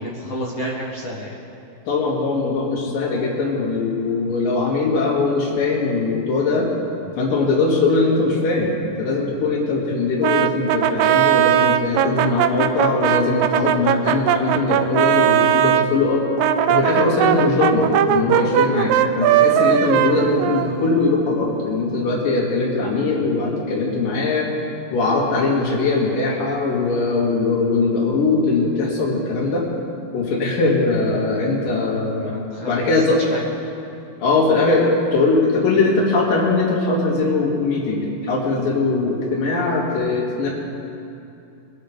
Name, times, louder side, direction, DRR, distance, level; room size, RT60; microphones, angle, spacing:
voice 1, 0.0-1.4 32.2-32.7 33.3-33.4 34.2-34.4, equal, 50° left, -4 dB, 1.7 m, -30 dB
voice 2, 1.9-6.7 7.2-16.3 16.7-24.5 24.9-29.6 30.1-32.3 32.7-33.2 34.2-40.5, left 3 dB, 75° left, -3 dB, 3.7 m, -20 dB
Brass instrument, 10.2-15.9 16.4-21.2, right 11 dB, 90° right, 1.6 m, -19 dB
23.5 x 11.5 x 3.3 m, 2.7 s
omnidirectional pair, 4.0 m